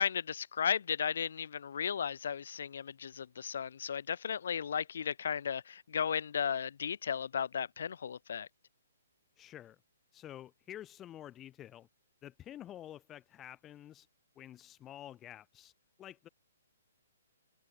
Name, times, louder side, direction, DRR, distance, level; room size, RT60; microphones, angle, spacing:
voice 1, 0.0-8.5, left 7 dB, 65° left, 2.1 m, -35 dB
voice 2, 9.4-9.8 10.1-11.9 12.2-14.1 14.4-15.7 16.0-16.3, left 12 dB, 15° left, 5.9 m, -49 dB
hypercardioid pair, 150°, 0 cm